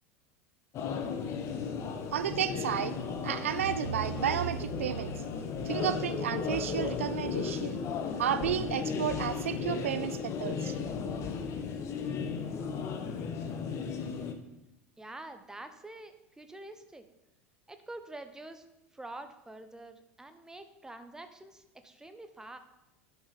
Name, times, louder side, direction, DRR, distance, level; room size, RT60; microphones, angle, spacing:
sound 1, 0.7-14.3, left 6 dB, 40° left, 1.0 m, -35 dB
voice 1, 2.1-5.2 5.6-7.8 8.2-10.8, right 10 dB, 70° right, 14 dB, 0.3 m, -32 dB
voice 2, 15.0-17.0 17.7-18.6 18.9-22.6, right 2 dB, 10° right, 8 dB, 0.9 m, -46 dB
11.0 x 6.0 x 4.1 m, 0.90 s
figure-of-eight pair, 75°, 7 cm